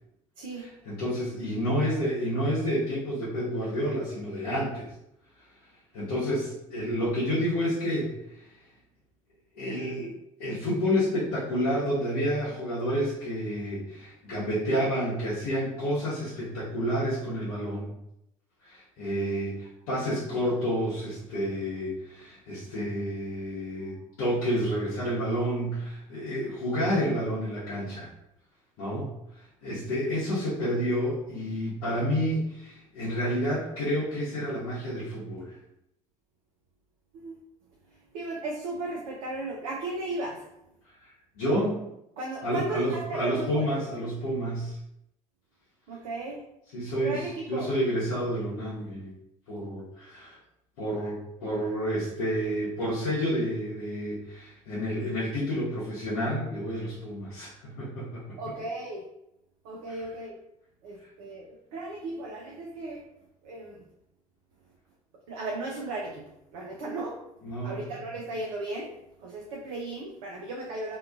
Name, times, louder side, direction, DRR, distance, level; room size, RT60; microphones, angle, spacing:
voice 1, 0.6-4.9 5.9-8.5 9.5-10.1 10.4-17.9 18.6-28.1 28.8-29.1 29.6-35.6 41.0-41.8 42.4-44.8 46.7-49.1 49.5-50.4 50.8-58.5 59.9-60.0 67.4-67.8, equal, 65° left, -10 dB, 0.9 m, -29 dB
voice 2, 38.1-40.4 42.2-43.7 45.9-46.4 47.0-47.7 58.4-59.0 59.6-60.3 60.8-63.0 63.4-63.8 65.3-66.3 66.5-67.2 67.6-68.9 69.2-71.0, right 2 dB, 65° right, -2 dB, 0.5 m, -35 dB
2.7 x 2.3 x 2.4 m, 0.83 s
figure-of-eight pair, 55°, 18 cm